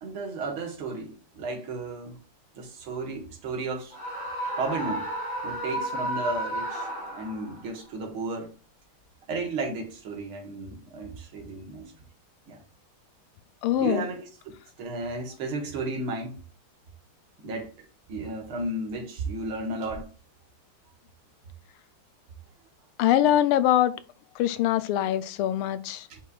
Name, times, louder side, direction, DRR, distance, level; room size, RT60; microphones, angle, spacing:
voice 1, 0.0-2.2 2.5-4.0 4.6-5.1 5.4-6.9 7.2-8.5 9.3-11.9 12.5-12.6 13.8-14.3 14.8-16.4 17.4-20.1 26.1-26.2, right 3 dB, 70° right, 2.3 m, -33 dB
Screaming, 3.9-7.6, right 1 dB, 40° left, 4.4 m, -32 dB
voice 2, 13.6-14.1 23.0-24.0 24.4-26.1, left 12 dB, 80° left, 1.5 m, -23 dB
8.2 x 5.5 x 2.4 m
omnidirectional pair, 2.4 m